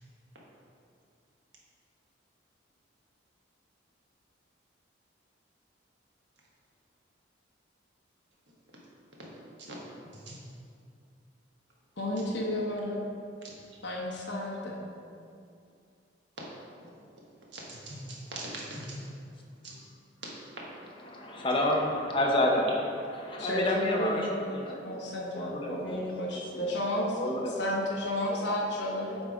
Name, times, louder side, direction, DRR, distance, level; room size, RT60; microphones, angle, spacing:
voice 1, 12.0-13.0 13.8-14.8 23.4-24.3 24.8-27.2 27.6-29.2, left 1 dB, 70° left, -4 dB, 0.9 m, -32 dB
voice 2, 17.5-19.1 19.6-19.8 20.2-20.6, right 1 dB, 70° right, -4 dB, 1.4 m, -41 dB
voice 3, 21.0-24.3 24.5-25.1 25.3-26.0 26.3-26.6 27.2-27.5, left 1 dB, 25° left, -1 dB, 0.7 m, -29 dB
8.0 x 3.6 x 5.0 m, 2.4 s
head